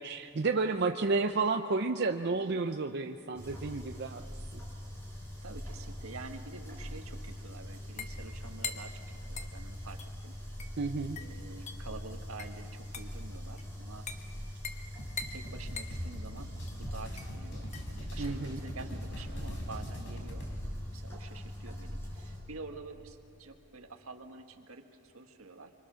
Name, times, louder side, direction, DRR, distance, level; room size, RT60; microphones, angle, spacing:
voice 1, 0.0-4.2 4.5-4.6 10.8-11.2 18.2-18.6, right 3 dB, 50° right, 6 dB, 0.6 m, -31 dB
voice 2, 0.6-0.9 5.4-10.4 11.2-14.1 15.3-20.6 20.9-25.7, right 3 dB, 80° right, 5 dB, 1.6 m, -48 dB
sound 1, 3.3-22.4, equal, 10° left, 5.3 m, -42 dB
sound 2, 6.6-20.1, left 5 dB, 30° left, 1.3 m, -46 dB
sound 3, 15.0-20.6, equal, 60° left, 4.3 m, -43 dB
25.5 x 24.5 x 6.3 m, 2.6 s
head